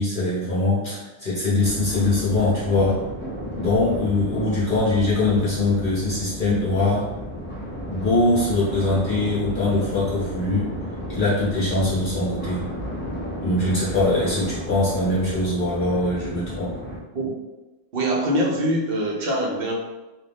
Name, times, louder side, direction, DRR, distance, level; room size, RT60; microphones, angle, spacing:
voice 1, 0.0-3.0 3.6-7.1 7.9-10.7 11.1-12.7 13.4-16.8, left 2 dB, 50° left, -9 dB, 0.9 m, -22 dB
sound 1, 1.6-17.0, equal, 15° left, 0.4 m, -33 dB
voice 2, 17.9-19.7, right 1 dB, 60° right, -2 dB, 0.8 m, -23 dB
2.6 x 2.5 x 3.3 m, 1.1 s
omnidirectional pair, 1.2 m